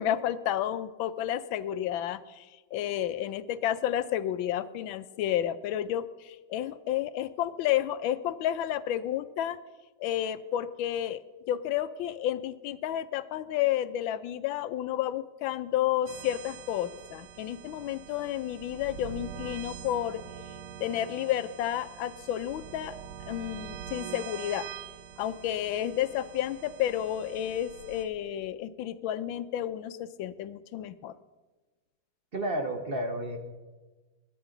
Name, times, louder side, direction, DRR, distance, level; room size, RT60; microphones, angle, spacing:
voice 1, 0.0-9.6 10.0-11.2 11.5-20.2 20.8-23.0 23.3-24.7 25.2-31.1, left 11 dB, 75° left, 14 dB, 1.3 m, -31 dB
sound 1, 16.1-28.1, right 8 dB, 65° right, 1.3 m, -44 dB
voice 2, 32.3-33.4, right 1 dB, 45° right, 5 dB, 0.7 m, -31 dB
21.5 x 10.0 x 3.8 m, 1.3 s
omnidirectional pair, 2.3 m